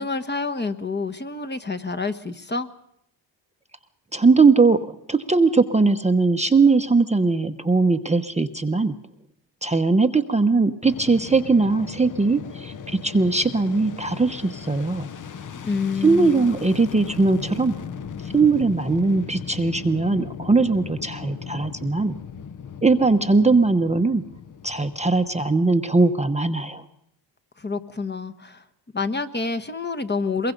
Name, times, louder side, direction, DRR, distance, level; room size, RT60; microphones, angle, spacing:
voice 1, 0.0-2.7 15.6-16.5 27.6-28.6 28.9-30.5, left 4 dB, 20° left, 9 dB, 1.2 m, -28 dB
voice 2, 4.1-8.9 9.6-15.1 16.0-17.7 18.2-22.1 22.8-24.2 24.6-26.8, right 3 dB, 15° right, 7 dB, 0.9 m, -20 dB
Fixed-wing aircraft airplane, 10.8-26.0, left 7 dB, 40° left, 0.9 m, -38 dB
23.0 x 22.0 x 5.3 m, 0.78 s
cardioid pair, 100°, 46 cm